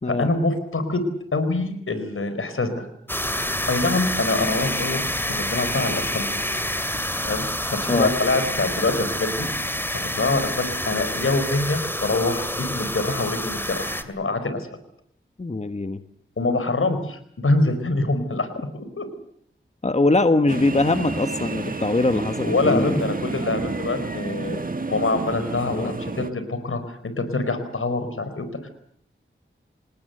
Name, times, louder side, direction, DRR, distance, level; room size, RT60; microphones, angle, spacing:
voice 1, 0.1-1.1 1.3-2.9 3.7-6.3 7.2-9.8 10.2-14.7 16.4-19.1 22.4-28.7, left 2 dB, 80° left, 10 dB, 4.5 m, -25 dB
sound 1, 3.1-14.0, left 1 dB, 10° left, 2.4 m, -28 dB
voice 2, 15.4-16.0 19.8-23.0 25.7-25.9, left 2 dB, 30° left, 9 dB, 1.3 m, -22 dB
sound 2, 20.5-26.3, right 3 dB, 40° right, 1.7 m, -30 dB
27.5 x 19.5 x 7.9 m, 0.67 s
wide cardioid pair, 80°, 21 cm